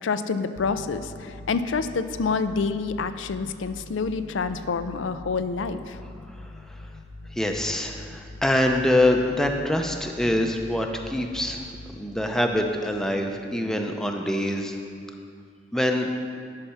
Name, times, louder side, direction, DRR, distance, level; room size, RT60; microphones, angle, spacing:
voice 1, 0.0-6.0, left 4 dB, 90° left, 10 dB, 0.5 m, -27 dB
sound 1, 0.5-13.7, left 2 dB, 55° left, 1.0 m, -44 dB
voice 2, 6.4-6.8 7.3-11.6 11.9-14.8 15.7-16.1, left 1 dB, 5° left, 3 dB, 0.6 m, -25 dB
11.5 x 5.7 x 5.7 m, 2.2 s
head